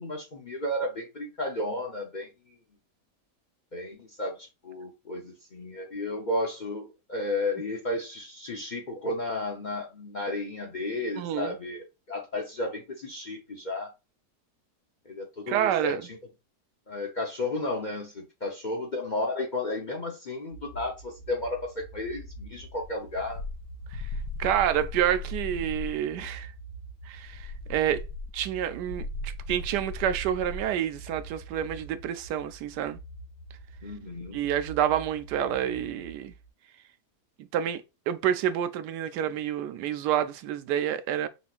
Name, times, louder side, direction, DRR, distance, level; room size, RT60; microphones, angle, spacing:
voice 1, 0.0-2.3 3.7-13.9 15.1-16.2 16.9-23.4 33.8-34.4, left 2 dB, 40° left, 0.6 m, -33 dB
voice 2, 11.2-11.5 15.5-16.1 23.9-24.0 24.4-26.5 27.1-28.0 28.3-33.0 34.3-36.3 37.5-41.3, right 10 dB, 90° right, 1.2 m, -28 dB
sound 1, 20.5-36.5, right 3 dB, ahead, 1.3 m, -45 dB
sound 2, 22.8-26.0 27.2-30.7, left 2 dB, 70° left, 1.1 m, -38 dB
6.1 x 3.0 x 2.5 m
omnidirectional pair, 1.8 m